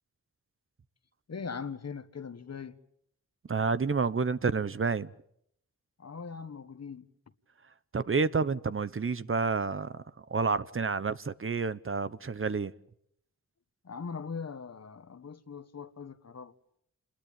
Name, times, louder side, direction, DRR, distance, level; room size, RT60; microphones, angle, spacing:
voice 1, 1.3-2.8 6.0-7.1 13.8-16.5, left 5 dB, 55° left, 1.5 m, -40 dB
voice 2, 3.5-5.1 7.9-9.9 10.3-12.7, right 4 dB, 40° right, 1.0 m, -29 dB
28.5 x 21.0 x 8.9 m
wide cardioid pair, 90°, 31 cm